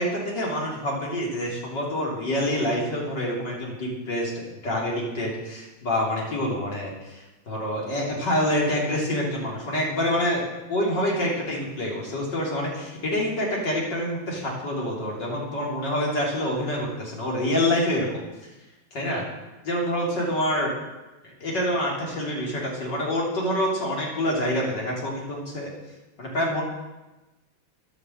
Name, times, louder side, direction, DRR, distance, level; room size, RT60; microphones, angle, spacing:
voice 1, 0.0-10.4 10.7-18.1 18.9-19.2 19.6-20.7 21.4-25.7 26.2-26.6, left 1 dB, 50° left, -3 dB, 3.9 m, -26 dB
11.0 x 9.8 x 7.8 m, 1.1 s
omnidirectional pair, 2.4 m